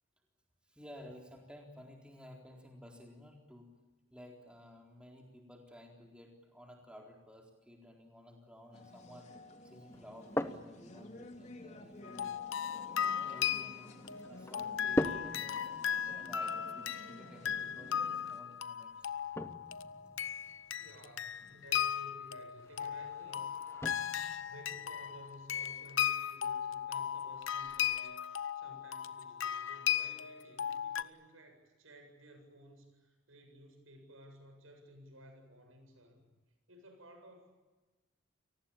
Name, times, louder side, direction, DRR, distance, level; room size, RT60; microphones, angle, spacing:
voice 1, 0.7-3.7 4.1-9.3 9.6-12.3 13.0-15.5 16.1-19.1, left 1 dB, 5° right, 1 dB, 4.0 m, -54 dB
sound 1, 8.7-18.4, left 1 dB, 35° left, 2.8 m, -53 dB
sound 2, 9.9-28.0, left 1 dB, 15° left, 0.9 m, -44 dB
sound 3, 12.0-31.0, left 9 dB, 75° left, 0.9 m, -37 dB
voice 2, 20.7-23.5 24.4-36.3 36.7-37.5, equal, 85° right, 6 dB, 7.7 m, -56 dB
29.5 x 19.0 x 8.8 m, 1.2 s
head